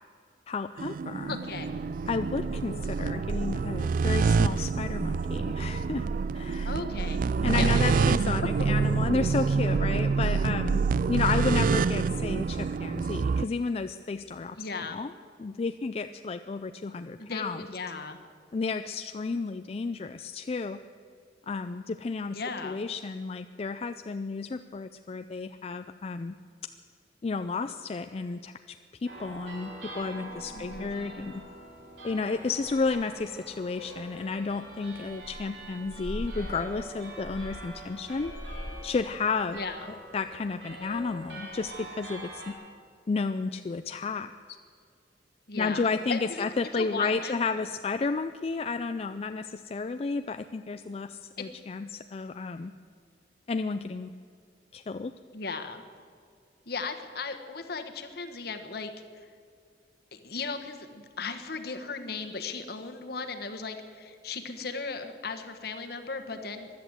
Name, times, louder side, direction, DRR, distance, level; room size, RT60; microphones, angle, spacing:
voice 1, 0.5-1.4 2.1-6.1 6.3-6.7 7.4-14.6 14.9-15.1 15.4-17.6 18.5-20.8 21.5-26.3 27.2-28.8 29.0-31.4 32.0-38.3 38.8-39.6 40.1-42.6 43.1-44.3 45.5-52.7 53.5-54.1 54.7-55.1, left 4 dB, 35° left, 9 dB, 0.4 m, -32 dB
sound 1, 0.8-13.4, right 5 dB, 50° right, 0.3 m, -27 dB
voice 2, 1.3-1.7 6.6-7.3 7.6-8.1 14.6-15.0 17.2-18.2 22.3-22.8 30.5-30.9 39.5-39.9 45.5-46.5 46.7-47.3 51.4-51.5 55.3-55.8 56.7-59.3 60.1-66.7, left 4 dB, 60° left, 6 dB, 1.3 m, -37 dB
sound 2, 29.1-42.5, right 1 dB, 85° right, 4.4 m, -42 dB
15.5 x 11.5 x 7.9 m, 2.2 s
head